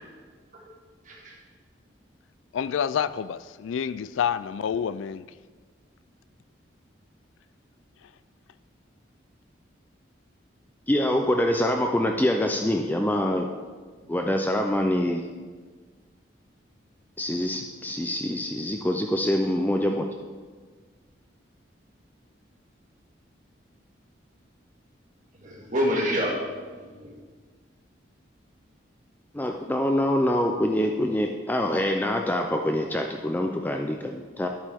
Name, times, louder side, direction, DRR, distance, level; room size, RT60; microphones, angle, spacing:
voice 1, 2.5-5.3, left 8 dB, 90° left, 16 dB, 0.3 m, -28 dB
voice 2, 10.9-13.5 14.1-15.2 17.2-20.1 29.3-34.5, left 1 dB, 10° left, 3 dB, 0.4 m, -25 dB
voice 3, 25.4-27.1, equal, 40° right, -2 dB, 2.0 m, -28 dB
10.5 x 8.6 x 3.5 m, 1.5 s
head